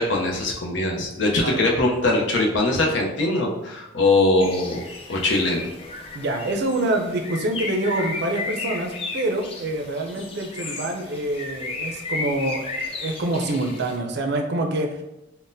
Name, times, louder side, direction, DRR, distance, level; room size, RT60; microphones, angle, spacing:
voice 1, 0.0-4.8 5.1-5.7, left 2 dB, 70° left, 0 dB, 0.6 m, -21 dB
Bird, 4.4-14.0, left 3 dB, 30° left, 0.4 m, -34 dB
voice 2, 6.1-15.0, right 1 dB, 60° right, 3 dB, 0.4 m, -26 dB
3.9 x 2.1 x 2.6 m, 0.93 s
head